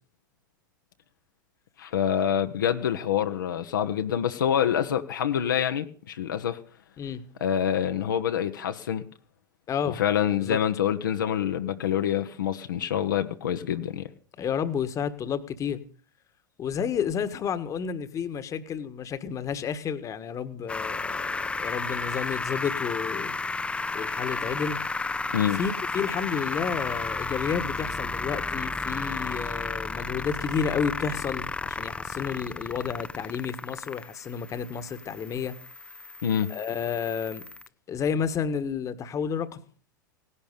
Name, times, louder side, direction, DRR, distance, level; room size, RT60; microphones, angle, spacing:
voice 1, 1.8-6.6 7.4-9.0 9.8-14.1 25.3-25.6 36.2-36.5, left 9 dB, 70° left, 1.2 m, -26 dB
voice 2, 9.7-10.0 10.4-10.6 14.4-15.8 16.6-23.3 23.9-24.8 25.2-35.6 36.5-37.5 37.9-39.6, left 7 dB, 30° left, 1.5 m, -31 dB
sound 1, 20.7-37.7, left 3 dB, 10° left, 0.7 m, -33 dB
18.0 x 11.5 x 6.8 m
figure-of-eight pair, 90°, 11 cm